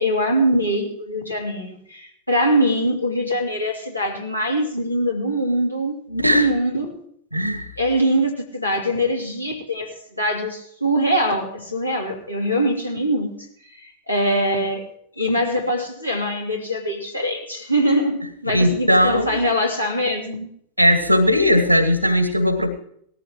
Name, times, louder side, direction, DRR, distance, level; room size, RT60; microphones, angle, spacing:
voice 1, 0.0-6.0 6.3-7.0 7.8-13.4 13.7-14.8 15.2-20.5, equal, 85° left, 0 dB, 2.7 m, -23 dB
voice 2, 6.1-6.5 7.3-7.7 18.5-19.3 20.8-22.7, equal, 90° right, 9 dB, 1.8 m, -18 dB
18.5 x 14.0 x 3.1 m, 0.65 s
figure-of-eight pair, 90°, 0 cm